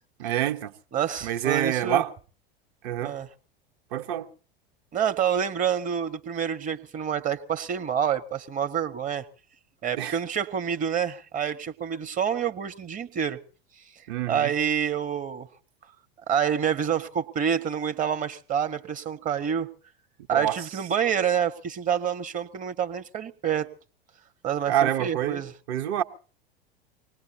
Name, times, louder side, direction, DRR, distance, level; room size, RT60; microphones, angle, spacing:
voice 1, 0.2-0.7 1.2-2.1 2.8-3.2 3.9-4.3 10.0-10.2 14.1-14.5 20.3-20.6 24.7-25.4 25.7-26.0, right 11 dB, 50° right, 1.1 m, -26 dB
voice 2, 0.9-2.0 3.0-3.3 4.9-9.3 9.8-13.4 14.3-15.5 16.3-19.7 20.3-23.7 24.4-25.5, right 8 dB, 25° right, 1.0 m, -27 dB
24.5 x 19.0 x 2.9 m
figure-of-eight pair, 85°, 30 cm